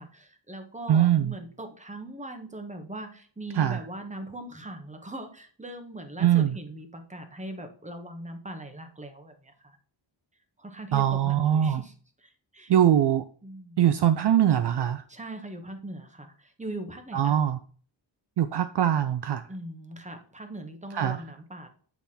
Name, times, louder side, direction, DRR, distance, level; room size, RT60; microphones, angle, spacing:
voice 1, 0.0-9.8 10.6-12.7 13.4-13.8 15.1-17.4 19.5-21.7, right 1 dB, 15° right, 1.2 m, -40 dB
voice 2, 0.9-1.3 3.6-3.8 6.2-6.5 10.9-11.8 12.7-13.2 13.8-15.0 17.1-17.6 18.4-19.4 21.0-21.2, right 10 dB, 60° right, 0.5 m, -22 dB
8.2 x 3.5 x 4.2 m
wide cardioid pair, 95°, 46 cm